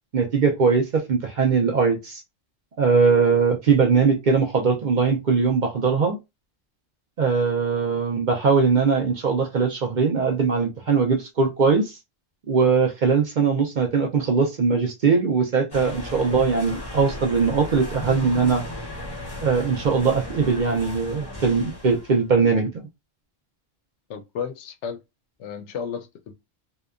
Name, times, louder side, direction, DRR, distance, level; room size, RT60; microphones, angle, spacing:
voice 1, 0.1-2.2 2.8-6.2 7.2-12.0 12.5-18.6 19.4-22.8, right 5 dB, 55° right, 0.6 m, -21 dB
sound 1, 15.7-22.3, left 1 dB, 25° left, 0.6 m, -35 dB
voice 2, 24.1-25.0 25.4-26.3, left 7 dB, 85° left, 0.9 m, -33 dB
2.8 x 2.2 x 2.4 m
omnidirectional pair, 1.2 m